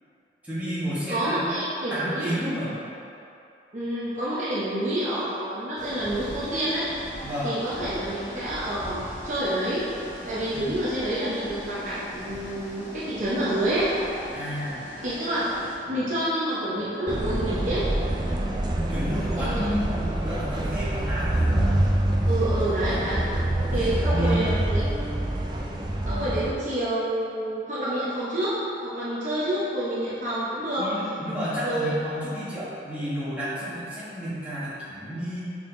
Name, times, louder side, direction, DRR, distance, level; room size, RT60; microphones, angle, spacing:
voice 1, 0.4-1.5 1.9-2.8 7.2-7.5 10.5-10.7 14.3-14.9 18.7-21.8 23.8-24.5 30.8-35.4, equal, 10° right, -12 dB, 1.5 m, -31 dB
voice 2, 1.1-2.3 3.7-6.9 7.4-9.8 10.2-13.9 15.0-15.4 15.9-17.8 19.4-19.7 22.3-23.2 23.7-24.9 26.1-28.5 28.8-30.8 31.6-31.9, right 1 dB, 45° right, -9 dB, 0.9 m, -28 dB
sound 1, 5.8-15.8, equal, 45° left, 1.3 m, -40 dB
sound 2, 17.1-26.5, right 1 dB, 25° right, 0.4 m, -26 dB
5.5 x 4.4 x 3.8 m, 2.8 s
head